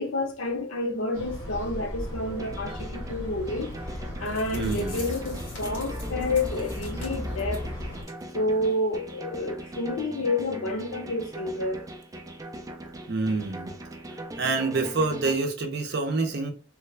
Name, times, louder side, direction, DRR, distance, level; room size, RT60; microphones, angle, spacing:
voice 1, 0.0-3.7 4.2-7.7 8.3-11.9, left 2 dB, 85° left, 0.7 m, -29 dB
sound 1, 1.1-8.0, left 1 dB, 15° left, 1.4 m, -36 dB
sound 2, 2.4-15.4, right 1 dB, 15° right, 0.3 m, -41 dB
sound 3, 4.0-4.1 4.3-7.7 8.0-8.2 8.5-8.6 9.1-9.2, left 2 dB, 65° left, 1.8 m, -45 dB
voice 2, 4.5-5.1 13.1-13.7 14.4-16.5, right 3 dB, 50° right, 0.6 m, -27 dB
3.1 x 2.3 x 3.2 m
head